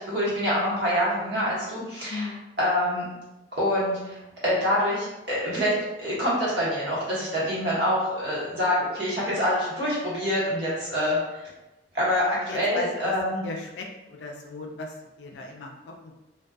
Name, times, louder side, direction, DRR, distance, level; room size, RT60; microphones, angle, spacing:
voice 1, 0.0-2.3 2.6-3.1 3.5-11.2 11.9-13.4, equal, 70° right, -7 dB, 1.1 m, -26 dB
voice 2, 2.1-2.4 12.5-13.1 13.4-16.1, left 3 dB, 75° left, 1 dB, 0.3 m, -36 dB
2.4 x 2.3 x 2.3 m, 0.99 s
head